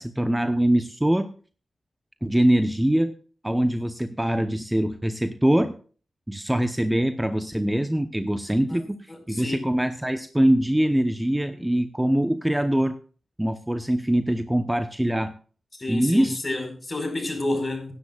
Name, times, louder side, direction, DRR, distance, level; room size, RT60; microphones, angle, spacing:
voice 1, 0.0-1.3 2.2-3.1 3.4-5.8 6.3-9.0 9.3-13.0 13.4-15.3 15.9-16.4, right 1 dB, 10° right, 0.8 m, -23 dB
voice 2, 9.1-9.7 15.7-17.9, left 2 dB, 30° left, 4.8 m, -30 dB
17.5 x 10.5 x 2.4 m
cardioid pair, 65°, 0 cm